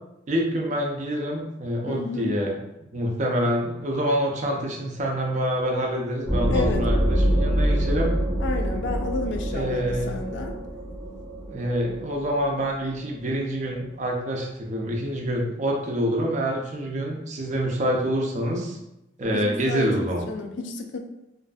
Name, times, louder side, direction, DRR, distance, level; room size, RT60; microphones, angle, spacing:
voice 1, 0.3-2.5 2.9-8.1 9.5-10.3 11.4-18.8 19.2-20.3, equal, 40° right, 0 dB, 0.4 m, -26 dB
voice 2, 1.9-2.3 6.5-6.9 8.4-10.6 19.3-21.0, left 3 dB, 70° left, 4 dB, 0.3 m, -31 dB
sound 1, 6.2-13.6, equal, ahead, 0.6 m, -26 dB
2.5 x 2.4 x 2.3 m, 0.89 s
head